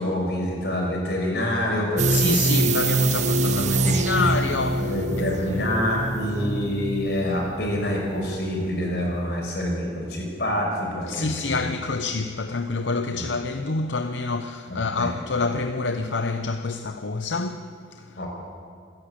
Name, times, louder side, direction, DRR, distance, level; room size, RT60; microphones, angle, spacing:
voice 1, 0.0-2.4 3.3-4.3 4.8-11.7 13.1-13.3 14.7-15.1 18.2-18.3, left 1 dB, 60° left, 5.9 m, -27 dB
sound 1, 2.0-8.8 9.1-9.2, right 3 dB, 40° right, 0.8 m, -25 dB
voice 2, 2.1-4.9 5.2-5.3 5.5-5.8 11.1-18.2, left 3 dB, 85° left, 0.8 m, -27 dB
27.0 x 11.0 x 8.8 m
head